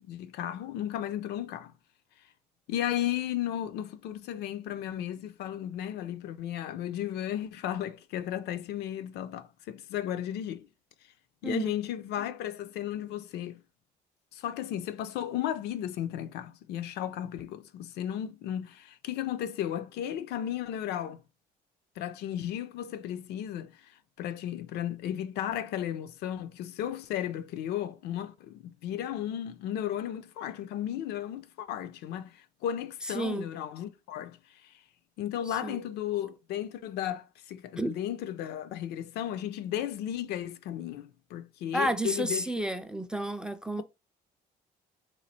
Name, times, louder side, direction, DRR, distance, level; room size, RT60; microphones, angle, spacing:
voice 1, 0.0-1.7 2.7-10.7 11.4-13.6 14.3-21.2 22.0-23.7 24.2-34.4 35.2-42.5, left 11 dB, 75° left, 0.5 m, -34 dB
voice 2, 33.1-33.5 35.6-35.8 37.8-38.0 41.7-43.8, right 1 dB, 5° right, 0.3 m, -31 dB
3.1 x 2.4 x 4.0 m
cardioid pair, 110°, 17 cm